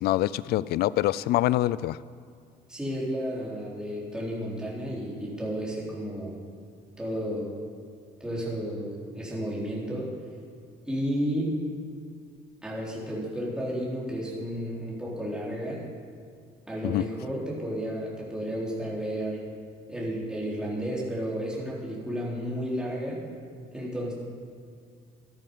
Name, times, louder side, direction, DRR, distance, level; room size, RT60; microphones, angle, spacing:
voice 1, 0.0-2.0 16.8-17.0, left 15 dB, 70° left, 19 dB, 0.4 m, -25 dB
voice 2, 2.7-6.4 7.0-7.5 8.2-10.1 10.9-11.6 12.6-15.9 16.7-19.5 19.9-23.2 23.7-24.1, equal, 5° right, -6 dB, 3.7 m, -32 dB
14.5 x 11.5 x 5.4 m, 2.2 s
cardioid pair, 110°, 17 cm